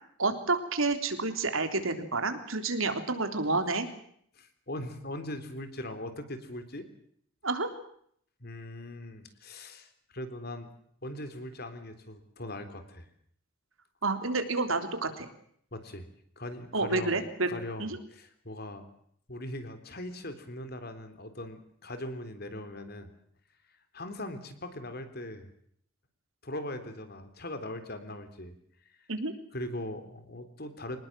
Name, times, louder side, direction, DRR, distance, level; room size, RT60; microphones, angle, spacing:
voice 1, 0.2-3.9 7.4-7.7 14.0-15.3 16.7-17.5 17.8-18.0 29.1-29.3, right 3 dB, 85° right, 7 dB, 3.5 m, -29 dB
voice 2, 4.4-6.9 8.4-10.7 11.0-13.1 15.7-16.1 16.4-18.8 19.3-23.1 23.9-25.5 26.4-28.6 29.0-29.1 29.5-31.0, left 1 dB, 50° left, 9 dB, 3.6 m, -40 dB
25.5 x 20.0 x 7.6 m, 0.67 s
head